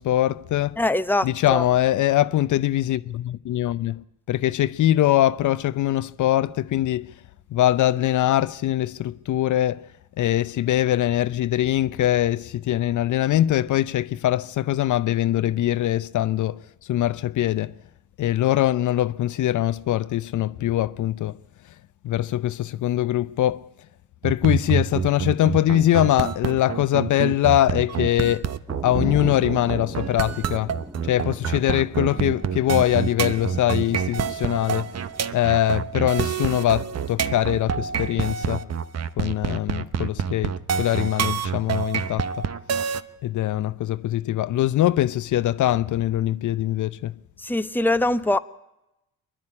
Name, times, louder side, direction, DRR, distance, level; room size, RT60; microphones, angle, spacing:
voice 1, 0.0-0.8 1.2-7.1 7.5-9.8 10.2-16.6 16.9-17.7 18.2-21.3 22.0-23.6 24.2-28.5 28.8-30.7 31.1-34.9 35.3-38.7 39.2-42.3 43.2-47.1, left 13 dB, 60° left, 0.7 m, -22 dB
voice 2, 0.8-1.6 47.4-48.4, left 2 dB, 5° left, 1.0 m, -22 dB
sound 1, 24.2-43.0, right 7 dB, 45° right, 1.0 m, -27 dB
sound 2, 28.7-38.7, right 1 dB, 10° right, 2.1 m, -39 dB
25.0 x 10.5 x 9.8 m
supercardioid pair, 60°, 35 cm